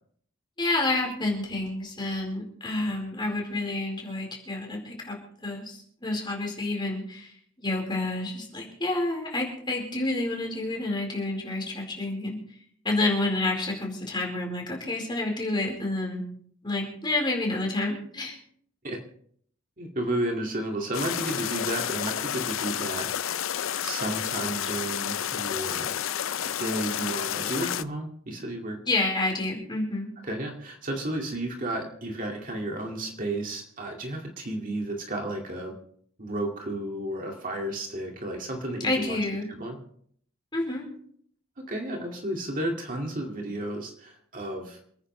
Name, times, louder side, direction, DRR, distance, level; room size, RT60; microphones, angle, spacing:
voice 1, 0.6-5.2 5.4-12.4 12.8-16.2 16.6-18.4 28.8-30.1 38.8-39.5 40.5-40.9, left 2 dB, 20° left, -1 dB, 4.6 m, -29 dB
voice 2, 19.8-23.1 23.8-26.0 26.4-28.8 30.2-35.7 36.2-39.2 39.5-39.8 41.7-44.8, right 1 dB, 40° right, 1 dB, 2.2 m, -32 dB
sound 1, 20.9-27.8, left 10 dB, 70° left, 0.5 m, -30 dB
28.0 x 9.9 x 3.3 m, 0.62 s
head